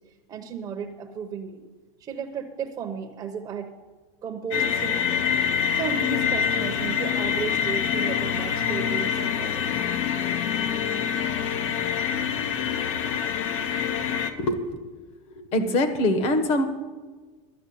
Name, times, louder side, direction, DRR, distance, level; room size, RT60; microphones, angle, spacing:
voice 1, 0.3-1.6 2.0-3.7 4.2-5.2 5.7-9.7, right 6 dB, 20° right, 3 dB, 0.8 m, -34 dB
sound 1, 4.5-14.3, left 8 dB, 70° left, 1.1 m, -26 dB
voice 2, 14.4-15.1 15.4-16.6, left 1 dB, 35° left, 9 dB, 1.2 m, -24 dB
12.0 x 7.1 x 8.5 m, 1.3 s
supercardioid pair, 180°, 17 cm